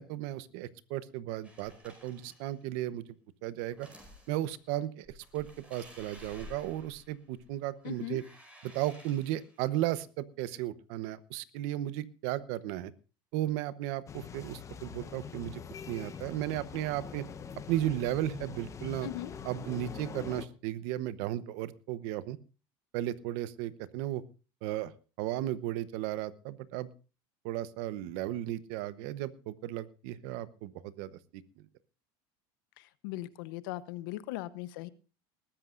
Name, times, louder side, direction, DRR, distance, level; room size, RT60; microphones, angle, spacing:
voice 1, 0.0-3.1 3.4-3.9 4.3-8.2 8.6-12.9 13.3-15.6 15.9-17.3 17.7-19.1 19.4-22.4 22.9-24.2 24.6-24.9 25.2-26.9 27.4-31.4, right 14 dB, 70° right, 16 dB, 0.9 m, -35 dB
sound 1, 1.4-2.6 3.6-4.5 5.0-7.5 7.8-9.7, left 1 dB, 10° right, 5.1 m, -53 dB
voice 2, 7.8-8.2 19.0-19.3 32.8-34.9, left 15 dB, 85° left, 16 dB, 0.9 m, -39 dB
sound 2, 14.1-20.5, left 6 dB, 25° left, 1.0 m, -44 dB
20.5 x 13.5 x 2.5 m, 0.33 s
supercardioid pair, 125°, 11 cm